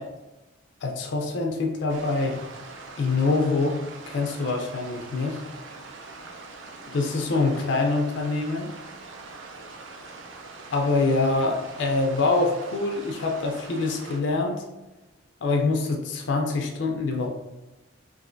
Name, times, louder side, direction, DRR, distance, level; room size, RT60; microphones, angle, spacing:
voice 1, 0.8-2.4 3.0-3.8 4.1-5.4 6.9-8.7 10.7-14.5 15.4-17.3, left 3 dB, 60° left, 2 dB, 0.4 m, -25 dB
sound 1, 1.9-14.2, right 3 dB, 70° right, 0.4 m, -43 dB
3.2 x 2.4 x 2.5 m, 1.0 s
head